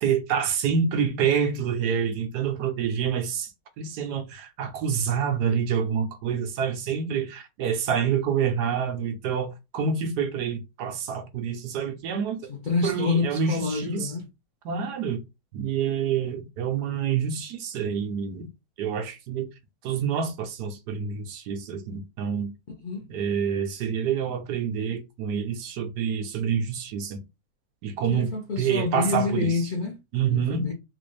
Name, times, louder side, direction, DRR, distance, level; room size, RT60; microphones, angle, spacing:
voice 1, 0.0-3.5 3.8-12.4 12.8-14.1 14.6-15.2 15.5-18.5 18.8-19.5 19.8-22.5 23.1-27.2 27.8-28.3 28.6-29.5 30.1-30.7, right 7 dB, 70° right, 1.2 m, -27 dB
voice 2, 12.5-14.2 22.8-23.1 28.1-30.0 30.3-30.7, left 4 dB, 60° left, 0.5 m, -28 dB
3.9 x 2.5 x 3.1 m
omnidirectional pair, 1.9 m